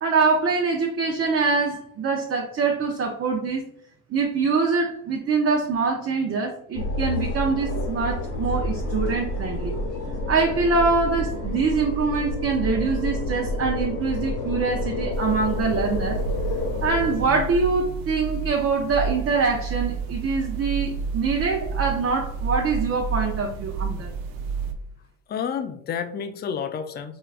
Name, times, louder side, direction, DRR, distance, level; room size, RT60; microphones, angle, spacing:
voice 1, 0.0-3.6 4.1-9.7 10.3-16.2 16.8-24.1, right 4 dB, 30° right, 0 dB, 0.6 m, -24 dB
sound 1, 6.7-17.2, left 1 dB, 45° left, 1.0 m, -29 dB
sound 2, 15.1-24.7, right 5 dB, 80° right, 0.6 m, -30 dB
voice 2, 25.3-27.2, left 7 dB, 25° left, 9 dB, 0.3 m, -30 dB
4.5 x 2.2 x 2.4 m, 0.67 s
supercardioid pair, 80°, 42 cm